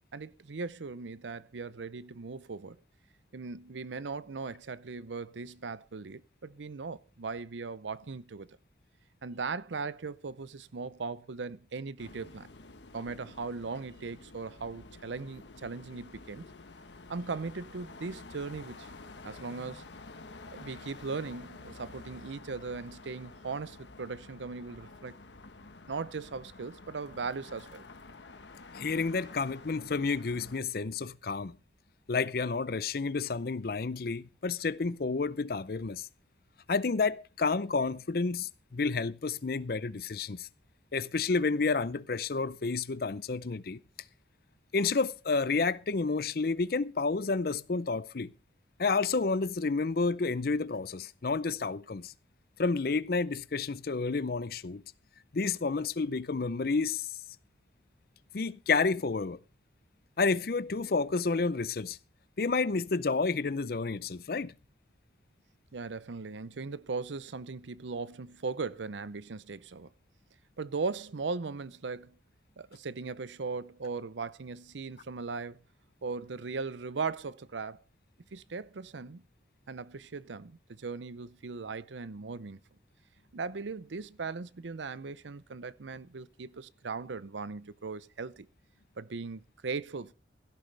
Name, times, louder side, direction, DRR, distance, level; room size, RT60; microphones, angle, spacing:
voice 1, 0.1-2.8 3.3-8.5 9.2-12.5 12.9-16.5 17.1-18.9 19.2-19.9 20.5-25.2 25.9-27.8 65.7-69.9 70.6-72.2 72.6-75.6 76.0-77.8 78.3-79.2 79.7-82.6 83.3-88.5 89.0-90.1, right 4 dB, 90° right, 0.6 m, -38 dB
sound 1, 12.0-30.6, left 3 dB, 80° left, 1.2 m, -50 dB
voice 2, 28.7-31.6 32.1-36.1 36.7-40.5 40.9-43.8 44.7-48.3 48.8-52.1 52.6-54.8 55.3-57.2 58.3-59.4 60.2-62.0 62.4-64.5, left 4 dB, 55° left, 0.6 m, -30 dB
16.0 x 13.0 x 3.3 m
head